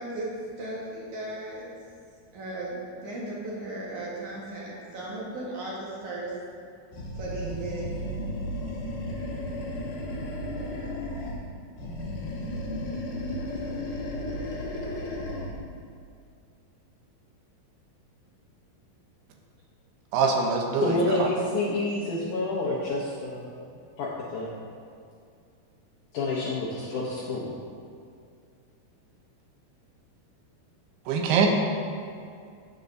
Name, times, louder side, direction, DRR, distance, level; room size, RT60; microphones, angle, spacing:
voice 1, 0.0-1.7 2.3-6.3 7.2-7.9, right 1 dB, 60° right, -5 dB, 2.4 m, -36 dB
Animal, 6.9-11.4 11.7-15.7, left 1 dB, 60° left, 2.6 m, -34 dB
voice 2, 20.1-21.3 31.1-31.5, right 5 dB, 80° right, 2 dB, 2.8 m, -23 dB
voice 3, 20.8-23.5 24.0-24.5 26.1-27.6, left 2 dB, 75° left, -5 dB, 1.9 m, -29 dB
14.5 x 6.9 x 2.7 m, 2.3 s
omnidirectional pair, 4.7 m